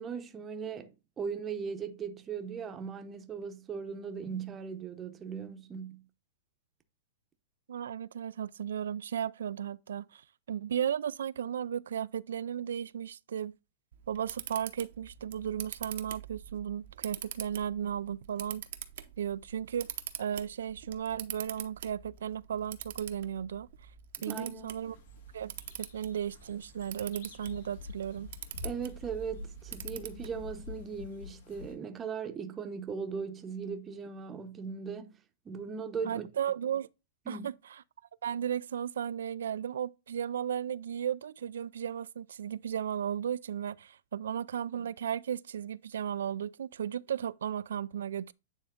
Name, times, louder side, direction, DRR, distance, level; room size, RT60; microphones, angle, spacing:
voice 1, 0.0-6.1 24.2-24.7 28.6-35.1 35.4-36.3 37.3-37.5, right 6 dB, 20° right, 0.8 m, -38 dB
voice 2, 7.7-13.6 14.1-18.6 19.2-19.9 20.2-23.7 24.2-25.0 25.3-25.5 25.8-28.3 36.1-36.9 37.3-37.8 38.2-48.3, right 9 dB, 85° right, 0.3 m, -35 dB
Camera, 13.9-30.6, right 11 dB, 70° right, 0.8 m, -45 dB
sound 1, 24.7-31.7, left 6 dB, 70° left, 2.0 m, -48 dB
9.0 x 3.5 x 3.6 m
hypercardioid pair, 145°, 0 cm